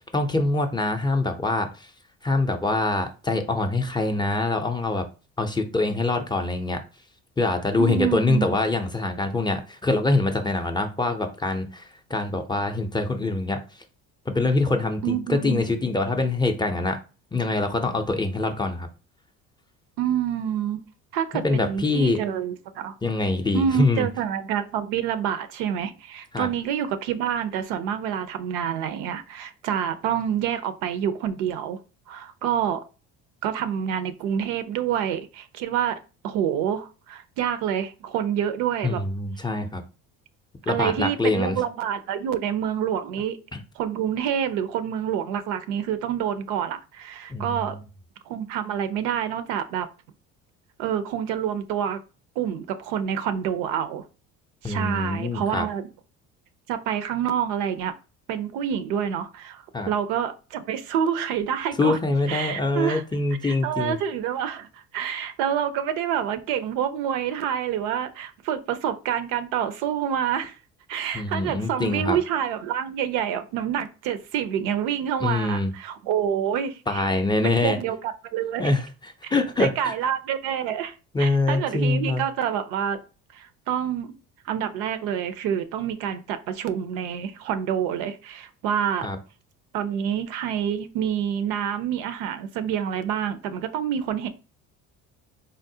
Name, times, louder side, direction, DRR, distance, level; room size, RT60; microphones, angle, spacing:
voice 1, 0.1-1.9 2.2-5.1 5.4-6.8 7.4-11.8 12.1-13.6 14.3-17.0 17.3-18.9 21.4-22.2 23.0-24.1 26.3-26.5 38.8-39.8 40.7-41.6 43.5-43.6 47.3-47.8 54.6-55.7 59.7-59.9 61.8-64.0 71.1-72.2 75.2-75.7 76.9-77.8 78.6-79.9 81.1-82.2 89.0-89.2, left 2 dB, 15° left, 0.4 m, -24 dB
voice 2, 7.8-8.6 15.0-15.7 20.0-20.8 21.1-23.0 23.5-31.8 32.1-32.8 33.4-36.0 36.2-39.0 40.7-43.4 43.8-47.8 48.3-49.9 50.8-52.0 52.4-54.0 54.6-55.8 56.7-57.9 58.3-62.0 62.3-63.0 63.4-70.6 70.9-77.1 77.4-78.7 79.6-83.0 83.3-84.1 84.5-89.1 89.7-94.3, right 9 dB, 85° right, 0.5 m, -27 dB
3.6 x 2.0 x 2.6 m
supercardioid pair, 85°, 35 cm